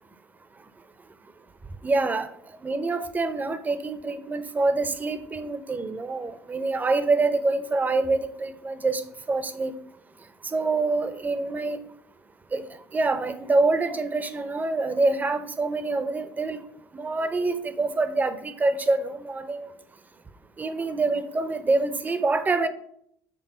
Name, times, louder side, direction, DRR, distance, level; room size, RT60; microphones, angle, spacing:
voice 1, 1.8-2.3 2.6-9.0 9.3-9.7 10.4-11.8 12.5-12.6 12.9-16.6 16.9-19.7 20.6-22.7, right 3 dB, 25° right, 11 dB, 0.7 m, -26 dB
6.2 x 3.6 x 5.5 m, 0.69 s
supercardioid pair, 95°, 7 cm